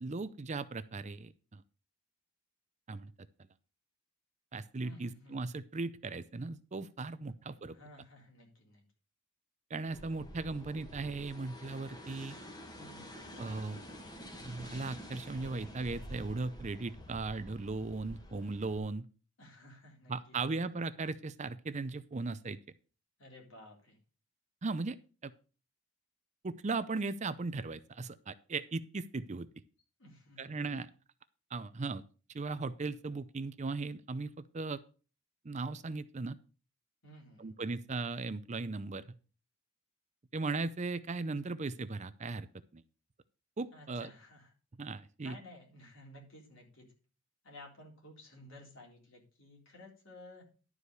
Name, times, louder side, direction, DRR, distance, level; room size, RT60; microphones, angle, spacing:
voice 1, 0.0-1.6 2.9-3.1 4.5-7.8 9.7-12.4 13.4-13.8 14.4-19.1 20.1-22.6 24.6-25.0 25.2-25.3 26.4-29.5 30.4-30.9 31.5-32.0 32.3-34.8 35.4-36.4 37.4-39.0 40.3-42.5 42.7-42.8 43.6-44.1 44.8-45.4, right 3 dB, 35° right, 14 dB, 0.5 m, -37 dB
voice 2, 4.8-5.3 7.7-8.8 12.8-13.2 19.4-20.6 23.2-24.0 30.0-30.7 37.0-37.5 43.7-44.5 45.2-46.9 47.4-50.5, left 1 dB, 65° left, 0 dB, 3.9 m, -54 dB
sound 1, 9.9-18.8, equal, 20° left, 1.5 m, -49 dB
11.5 x 4.8 x 6.8 m, 0.37 s
head